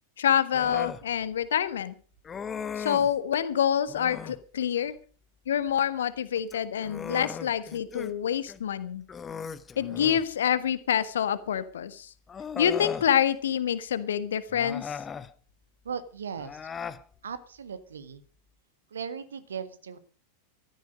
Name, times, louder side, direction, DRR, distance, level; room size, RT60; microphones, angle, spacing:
voice 1, 0.2-1.9 2.7-4.9 5.5-9.0 9.8-12.1 12.5-15.0, left 9 dB, 65° left, 14 dB, 1.4 m, -27 dB
Human voice, 0.5-1.0 2.3-3.2 3.9-4.4 6.4-8.1 8.5-8.6 9.1-10.3 11.5-11.6 12.3-13.1 14.5-15.3 16.4-17.0, left 6 dB, 20° left, 0.9 m, -37 dB
voice 2, 15.8-16.6 17.2-18.2 18.9-20.0, right 6 dB, 70° right, 13 dB, 1.7 m, -37 dB
15.5 x 13.5 x 5.1 m, 0.41 s
figure-of-eight pair, 90°, 0 cm